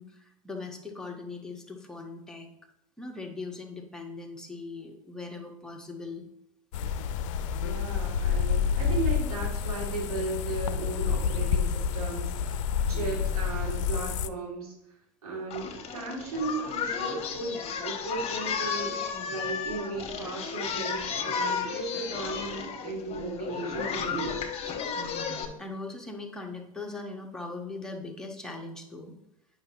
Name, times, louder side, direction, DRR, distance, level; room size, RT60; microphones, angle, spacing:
voice 1, 0.0-2.5 3.0-6.2 12.9-13.2 24.9-29.2, left 3 dB, 5° left, 1 dB, 1.4 m, -40 dB
sound 1, 6.7-14.3, left 7 dB, 60° left, 0.5 m, -28 dB
voice 2, 7.6-14.7 15.2-24.4, right 3 dB, 80° right, -4 dB, 2.9 m, -36 dB
Singing, 15.5-25.4, left 6 dB, 35° left, 1.3 m, -33 dB
9.2 x 5.6 x 3.1 m, 0.81 s
hypercardioid pair, 85°, 19 cm